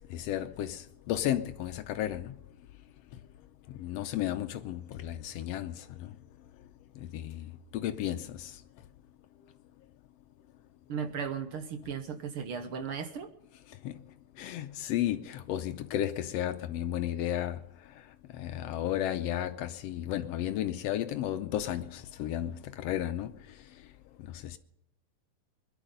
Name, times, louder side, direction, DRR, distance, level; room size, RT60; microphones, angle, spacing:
voice 1, 0.1-2.3 3.8-5.8 7.1-8.5 13.8-13.9 14.4-17.6 18.3-23.3 24.4-24.6, left 12 dB, 75° left, 1.5 m, -33 dB
voice 2, 10.9-13.3, right 6 dB, 70° right, 1.3 m, -36 dB
21.5 x 11.5 x 5.3 m
omnidirectional pair, 3.5 m